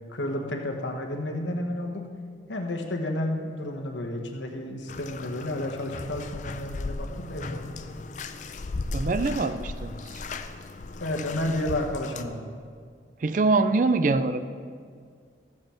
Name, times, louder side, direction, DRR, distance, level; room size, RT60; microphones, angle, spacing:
voice 1, 0.1-2.0 2.5-7.7 11.0-12.5, left 1 dB, 85° left, 2 dB, 1.2 m, -31 dB
Bathtub (filling or washing), 4.9-12.2, left 3 dB, 40° left, 0.4 m, -36 dB
voice 2, 8.9-10.0 13.2-14.5, right 3 dB, 45° right, 11 dB, 0.4 m, -24 dB
14.0 x 7.7 x 4.4 m, 2.1 s
head